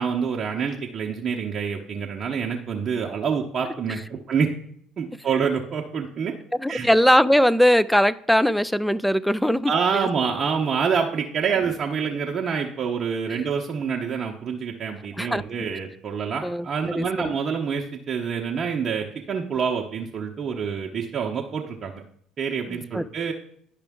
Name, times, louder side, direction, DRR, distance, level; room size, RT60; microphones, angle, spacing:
voice 1, 0.0-4.0 4.3-4.5 5.0-6.3 6.7-6.9 9.7-22.0 22.4-23.3, right 6 dB, 45° right, -1 dB, 0.8 m, -27 dB
voice 2, 6.6-9.7 15.2-15.4 16.4-16.7 16.9-17.3 22.7-23.0, equal, ahead, 18 dB, 0.3 m, -20 dB
11.0 x 4.9 x 3.5 m, 0.65 s
supercardioid pair, 80°, 0 cm